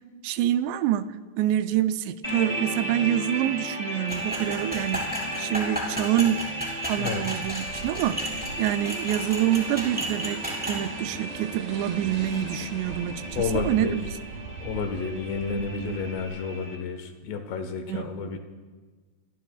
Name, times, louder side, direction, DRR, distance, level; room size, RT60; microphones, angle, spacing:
voice 1, 0.2-6.4 6.9-14.0 17.9-18.4, right 12 dB, 80° right, 11 dB, 2.8 m, -27 dB
sound 1, 2.2-16.8, right 1 dB, 20° left, 1.0 m, -36 dB
sound 2, 4.1-10.8, equal, ahead, 4.4 m, -33 dB
sound 3, 7.3-16.3, right 5 dB, 65° right, 2.4 m, -40 dB
voice 2, 13.4-14.0 14.6-18.4, left 5 dB, 80° left, 6 dB, 3.5 m, -30 dB
28.0 x 22.0 x 2.4 m, 1.4 s
omnidirectional pair, 5.0 m